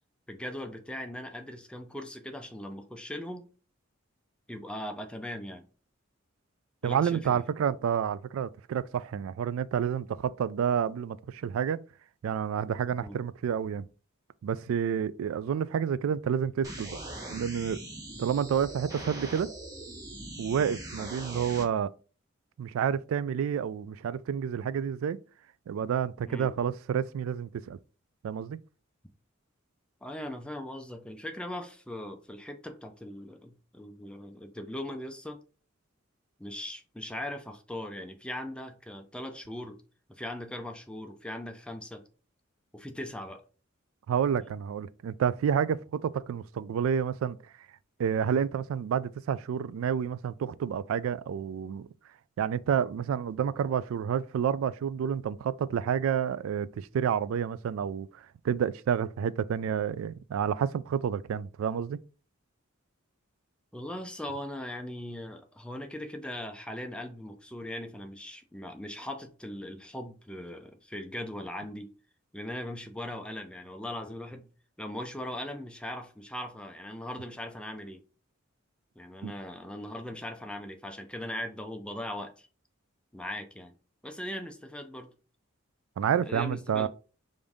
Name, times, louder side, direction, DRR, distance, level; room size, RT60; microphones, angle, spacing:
voice 1, 0.3-3.5 4.5-5.7 6.8-7.4 13.0-13.2 26.2-26.5 30.0-35.4 36.4-39.8 40.1-42.0 42.7-43.4 63.7-71.9 72.3-74.5 74.8-78.0 79.0-82.5 83.1-83.7 84.0-85.1 86.2-86.9, left 1 dB, 5° left, 0.5 m, -39 dB
voice 2, 6.8-11.8 12.2-13.8 14.4-17.0 17.3-17.8 18.2-19.5 20.4-21.9 22.6-25.2 25.7-27.8 28.2-28.6 44.1-47.4 48.0-51.9 52.4-62.0 79.2-79.3 86.0-86.9, right 8 dB, 85° right, 0.3 m, -29 dB
sound 1, 16.6-21.6, right 1 dB, 15° right, 1.2 m, -41 dB
5.1 x 2.6 x 3.5 m
head